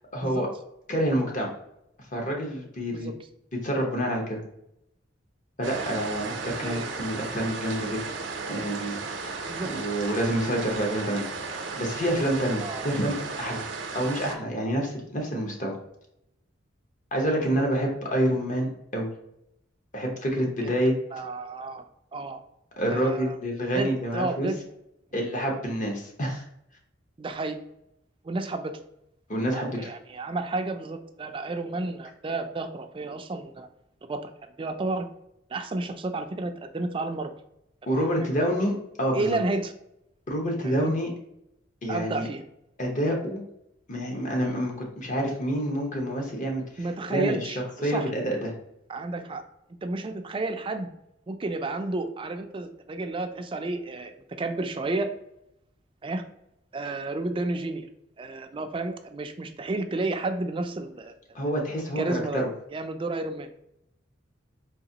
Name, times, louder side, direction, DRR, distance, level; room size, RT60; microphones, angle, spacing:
voice 1, 0.1-0.5 0.9-1.5 2.1-3.1 3.5-4.4 5.6-8.0 8.5-9.0 9.7-11.3 11.8-13.7 13.9-15.8 17.1-19.1 19.9-20.9 22.8-24.5 25.1-26.4 29.3-29.9 37.9-38.7 39.0-39.3 40.3-41.1 41.8-42.3 42.8-43.4 43.9-46.6 47.1-47.5 47.8-48.5 61.3-62.5, equal, 45° left, 0 dB, 1.0 m, -27 dB
sound 1, 5.6-14.4, right 4 dB, 75° right, 0.6 m, -35 dB
voice 2, 6.5-6.9 9.5-9.7 12.6-12.9 20.6-20.7 21.1-21.8 22.1-22.4 22.9-23.4 23.7-24.6 27.2-27.6 28.2-28.7 29.5-33.7 34.1-34.3 34.6-35.1 35.5-37.3 37.9-38.1 39.1-39.7 40.8-40.9 41.9-42.4 46.8-48.1 48.9-49.4 49.8-50.9 51.3-55.1 56.0-56.2 56.7-57.9 58.2-61.1 62.0-62.4 62.7-63.5, right 2 dB, 30° right, 7 dB, 0.4 m, -31 dB
4.0 x 2.8 x 2.8 m, 0.81 s
head